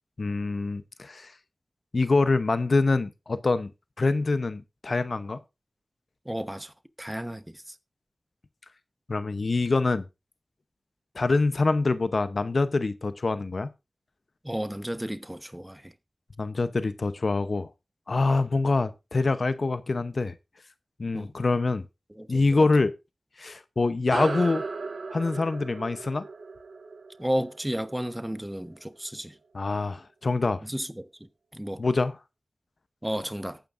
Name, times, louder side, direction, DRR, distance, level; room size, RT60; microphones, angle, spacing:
voice 1, 0.2-1.3 1.9-3.7 4.0-5.4 9.1-10.1 11.1-13.7 16.4-17.7 18.1-20.3 21.0-21.9 22.3-22.9 23.4-24.6 25.1-26.3 29.5-30.6 31.8-32.1, left 3 dB, 65° left, 0.8 m, -25 dB
voice 2, 6.2-7.7 14.4-15.9 21.1-21.3 22.1-22.7 27.2-29.4 30.6-31.1 31.5-31.8 33.0-33.6, equal, 10° right, 1.0 m, -33 dB
sound 1, 24.1-28.9, right 3 dB, 80° right, 1.6 m, -36 dB
19.0 x 9.1 x 2.6 m
cardioid pair, 40°, 0 cm